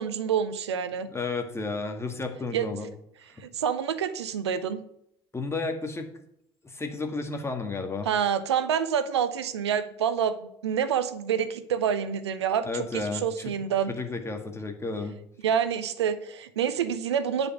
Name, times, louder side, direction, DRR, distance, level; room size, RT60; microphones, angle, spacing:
voice 1, 0.0-1.1 2.5-2.7 3.4-4.8 8.0-10.4 10.6-13.9 15.4-17.5, right 8 dB, 80° right, 13 dB, 0.7 m, -27 dB
voice 2, 1.1-2.9 5.3-6.1 6.6-8.1 12.6-13.5 13.9-15.2, left 3 dB, 20° left, 5 dB, 2.1 m, -32 dB
10.0 x 5.3 x 8.1 m, 0.75 s
figure-of-eight pair, 60°, 14 cm